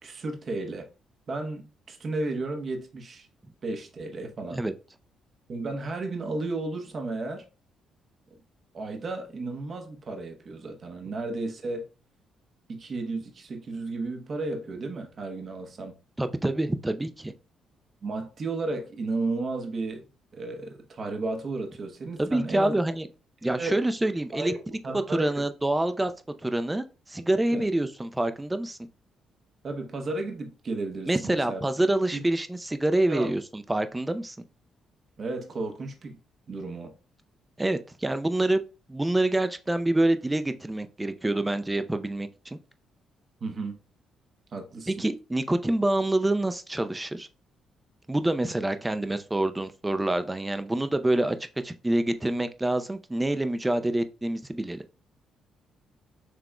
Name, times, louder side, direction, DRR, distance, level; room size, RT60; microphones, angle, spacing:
voice 1, 0.0-0.9 1.3-3.3 3.6-4.6 5.5-7.5 8.7-11.9 12.7-15.9 18.0-20.1 20.3-22.7 23.4-23.8 24.3-24.6 24.8-25.3 27.5-27.7 29.6-31.6 33.1-33.3 35.2-36.2 36.5-36.9 43.4-43.8 44.5-45.0, right 3 dB, 45° right, 1.0 m, -33 dB
voice 2, 16.2-17.3 22.2-23.1 23.4-24.5 25.1-26.1 26.4-28.8 31.1-34.4 37.6-38.6 38.9-42.6 44.9-47.3 48.1-51.4 51.6-54.8, right 1 dB, 15° right, 0.5 m, -26 dB
6.0 x 3.4 x 2.2 m
cardioid pair, 90°, 0 cm